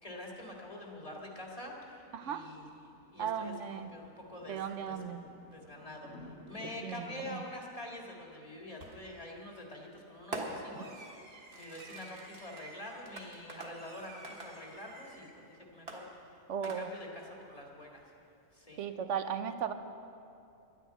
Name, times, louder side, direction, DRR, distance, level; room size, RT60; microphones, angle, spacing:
voice 1, 0.0-5.0 5.5-6.1 6.5-11.0 11.5-18.0 18.5-18.8, left 1 dB, 25° left, -1 dB, 1.9 m, -46 dB
sound 1, 1.6-6.9, left 2 dB, 55° left, 1.9 m, -56 dB
voice 2, 2.1-2.5 3.2-3.9 4.5-5.3 6.6-7.4 16.5-16.9 18.8-19.7, right 7 dB, 65° right, 10 dB, 1.0 m, -36 dB
Fireworks, 8.8-9.2 10.3-15.4 15.9-17.2, right 2 dB, 45° right, 1.9 m, -46 dB
12.0 x 10.0 x 9.1 m, 2.7 s
omnidirectional pair, 1.5 m